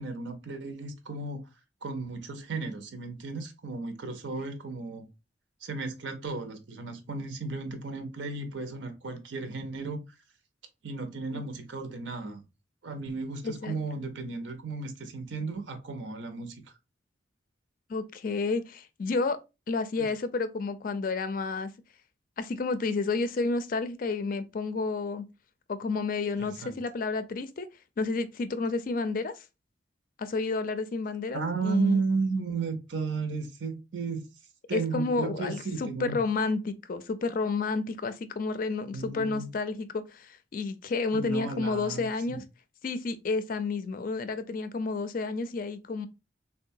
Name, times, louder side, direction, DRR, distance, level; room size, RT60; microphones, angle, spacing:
voice 1, 0.0-1.4 1.8-5.1 5.6-10.0 10.8-12.4 12.8-16.6 20.0-20.1 26.4-26.7 31.3-34.2 34.7-36.2 38.9-39.5 41.1-42.4, right 4 dB, 80° right, 0.6 m, -34 dB
voice 2, 13.4-13.8 17.9-19.4 19.7-21.7 22.4-25.2 25.7-27.7 28.0-29.4 30.2-32.0 34.7-42.4 42.8-46.1, left 3 dB, 45° left, 0.4 m, -30 dB
3.7 x 2.2 x 2.6 m
head